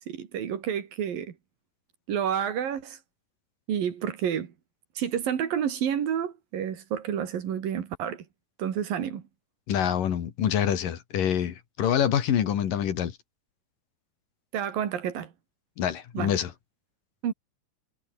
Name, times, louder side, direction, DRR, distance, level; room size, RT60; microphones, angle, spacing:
voice 1, 0.1-1.3 2.1-3.0 3.7-4.5 5.0-8.3 8.6-9.2 14.5-15.3 16.1-16.3 17.2-17.3, right 9 dB, 70° right, 4.0 m, -29 dB
voice 2, 9.7-13.2 15.8-16.5, left 9 dB, 65° left, 3.5 m, -26 dB
omnidirectional pair, 4.2 m